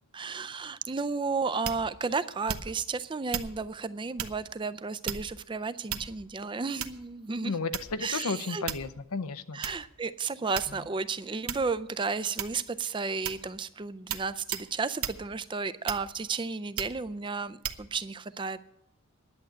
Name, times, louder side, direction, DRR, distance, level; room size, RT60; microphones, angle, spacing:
voice 1, 0.1-7.6 8.0-8.6 9.5-18.7, right 4 dB, 20° right, 15 dB, 0.4 m, -33 dB
sound 1, 1.6-2.0 2.5-2.9 3.3-3.6 4.2-4.4 5.0-5.4 5.9-6.3 6.8-7.1 7.7-8.1 8.7-9.0 9.6-9.8 10.5-11.0 11.5-11.7 12.4-12.7 13.2-13.5 14.1-14.3 14.5-14.7 15.0-15.2 15.9-16.3 16.8-17.0 17.6-17.8, right 9 dB, 70° right, 0.8 m, -35 dB
voice 2, 7.4-9.6, left 4 dB, 85° left, 10 dB, 0.7 m, -33 dB
10.5 x 7.7 x 9.5 m, 0.82 s
head